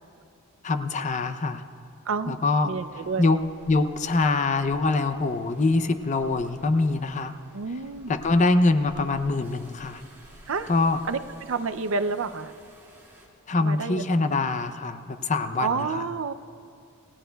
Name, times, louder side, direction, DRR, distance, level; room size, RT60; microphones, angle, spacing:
voice 1, 0.6-1.6 2.3-2.7 3.2-3.4 3.7-7.3 8.1-10.0 10.7-11.0 13.5-16.0, left 3 dB, 35° left, 9 dB, 0.5 m, -24 dB
voice 2, 2.1-2.4 2.6-3.3 7.5-8.1 10.5-10.7 11.1-12.5 13.6-14.3 15.6-16.3, right 4 dB, 60° right, 11 dB, 0.5 m, -29 dB
sound 1, 2.8-13.3, equal, 15° right, 2.2 m, -52 dB
27.5 x 16.0 x 2.3 m, 2.7 s
head